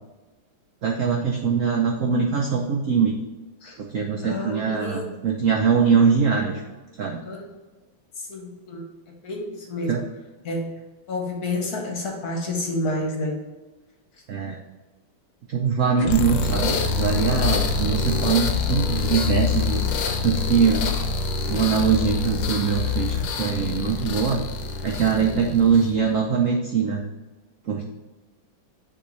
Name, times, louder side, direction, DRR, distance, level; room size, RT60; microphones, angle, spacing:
voice 1, 0.8-3.1 3.9-6.6 7.0-7.2 9.9-10.0 14.3-14.6 15.5-19.8 20.2-20.9 21.5-24.4 24.8-27.0 27.7-27.8, right 6 dB, 80° right, 0 dB, 0.7 m, -22 dB
voice 2, 4.2-5.1 7.2-7.5 8.2-8.8 9.2-9.9 10.4-10.7 11.1-13.4 25.1-25.5, left 2 dB, 55° left, 0 dB, 1.5 m, -29 dB
sound 1, 16.0-26.0, left 5 dB, 75° left, 1.4 m, -25 dB
9.8 x 3.6 x 3.1 m, 1.2 s
omnidirectional pair, 2.2 m